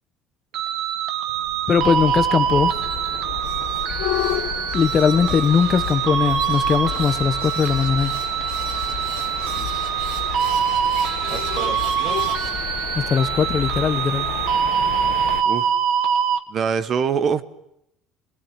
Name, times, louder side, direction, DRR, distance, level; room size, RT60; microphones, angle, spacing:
sound 1, 0.5-16.4, right 9 dB, 55° right, 1.3 m, -24 dB
sound 2, 1.3-12.5, right 4 dB, 80° right, 4.8 m, -39 dB
voice 1, 1.7-2.7 4.7-8.1 12.9-14.2, left 7 dB, 25° left, 12 dB, 1.0 m, -20 dB
sound 3, 1.8-15.4, left 15 dB, 75° left, 1.0 m, -32 dB
voice 2, 11.3-12.2 15.4-15.7 16.5-17.4, right 6 dB, 35° right, 14 dB, 0.9 m, -25 dB
25.0 x 18.5 x 9.1 m, 0.80 s
cardioid pair, 170°, 0 cm